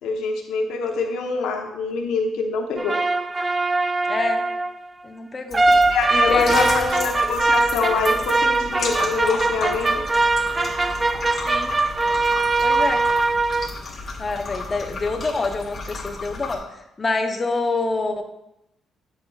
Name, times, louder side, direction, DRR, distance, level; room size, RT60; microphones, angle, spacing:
voice 1, 0.0-3.0 5.7-6.9 7.1-10.0, left 4 dB, 85° left, 3 dB, 0.9 m, -25 dB
sound 1, 2.8-4.8 5.5-13.7, right 3 dB, 25° right, 0.3 m, -21 dB
voice 2, 4.1-4.4 5.0-5.6 6.1-7.2 11.4-11.7 12.6-13.0 14.2-18.2, left 3 dB, 30° left, 4 dB, 0.7 m, -26 dB
sound 2, 5.5-16.6, left 3 dB, 45° left, 1.4 m, -33 dB
11.0 x 5.5 x 2.4 m, 0.85 s
cardioid pair, 90°, 0 cm